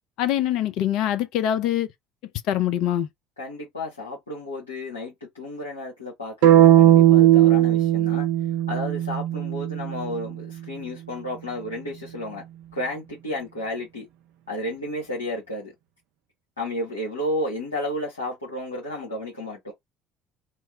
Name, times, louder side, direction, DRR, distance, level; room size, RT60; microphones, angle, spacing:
voice 1, 0.2-1.9 2.5-3.1, left 11 dB, 60° left, 0.5 m, -23 dB
voice 2, 3.4-8.3 8.7-12.4 12.7-14.1 14.5-15.7 16.6-19.7, left 1 dB, 85° left, 1.2 m, -32 dB
sound 1, 6.4-10.5, right 12 dB, 65° right, 0.4 m, -18 dB
3.0 x 2.1 x 3.4 m
figure-of-eight pair, 55°, 0 cm